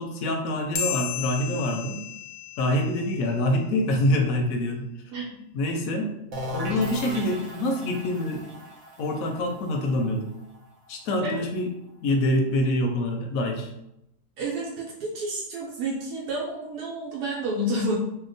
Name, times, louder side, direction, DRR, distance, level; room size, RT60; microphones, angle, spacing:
voice 1, 0.0-2.0 2.6-4.9 5.5-6.1 6.5-8.5 9.0-10.2 10.9-11.7 12.0-13.7, left 1 dB, 70° left, 3 dB, 0.9 m, -25 dB
sound 1, 0.7-3.6, left 8 dB, 90° left, 1.2 m, -34 dB
sound 2, 6.3-11.9, left 1 dB, 65° right, 1.2 m, -37 dB
voice 2, 14.4-18.0, right 1 dB, 90° right, -4 dB, 1.2 m, -30 dB
2.8 x 2.1 x 3.9 m, 0.82 s
omnidirectional pair, 1.7 m